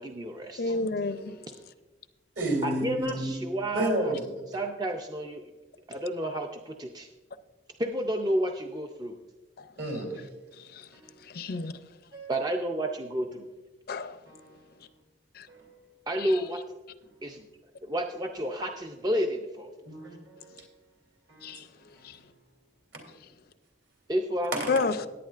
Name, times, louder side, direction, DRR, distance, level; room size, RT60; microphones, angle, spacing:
voice 1, 0.0-0.7 2.6-4.1 4.5-5.4 5.9-7.1 7.8-9.2 12.3-13.5 16.1-16.6 17.2-17.4 17.8-19.7 24.1-24.5, right 1 dB, 20° right, 0.4 m, -30 dB
voice 2, 0.6-1.4 9.6-9.7 10.5-10.9 11.2-11.7 13.9-14.2 15.3-15.5 16.2-16.4 21.4-22.2 24.7-25.0, left 3 dB, 50° left, 0.4 m, -31 dB
voice 3, 2.4-4.3 9.8-10.2 10.9-11.1 12.1-12.3 14.3-14.7 15.5-15.8 19.8-20.6 21.3-21.6 21.9-22.1 22.9-23.0 24.5-24.9, right 1 dB, 65° right, 3.0 m, -32 dB
17.5 x 9.1 x 2.4 m
head